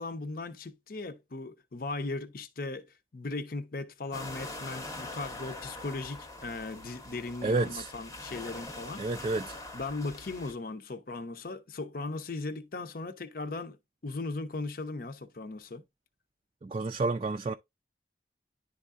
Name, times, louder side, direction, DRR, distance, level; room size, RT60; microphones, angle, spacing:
voice 1, 0.0-2.9 3.1-9.0 9.7-13.8 14.0-15.8, left 3 dB, 55° left, 0.7 m, -38 dB
sound 1, 4.1-10.5, left 2 dB, 20° left, 0.8 m, -43 dB
voice 2, 7.4-7.9 9.0-9.6 16.6-17.5, right 3 dB, 35° right, 0.3 m, -30 dB
11.0 x 3.6 x 2.5 m
head